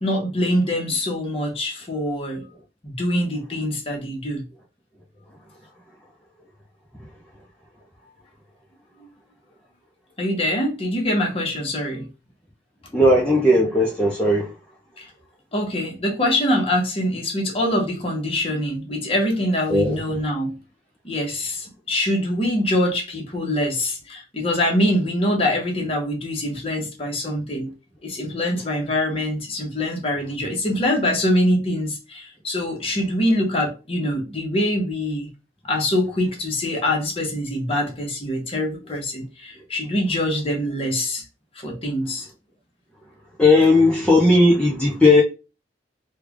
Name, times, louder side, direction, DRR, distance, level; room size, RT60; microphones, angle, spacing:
voice 1, 0.0-2.5 2.8-4.4 10.2-12.1 15.0-15.1 15.5-20.6 21.0-27.7 28.0-35.3 35.6-41.2 41.5-42.3, left 1 dB, 30° left, 1.1 m, -24 dB
voice 2, 12.9-14.5 19.7-20.0 43.4-45.2, left 2 dB, 5° left, 0.7 m, -16 dB
3.3 x 2.3 x 3.6 m
head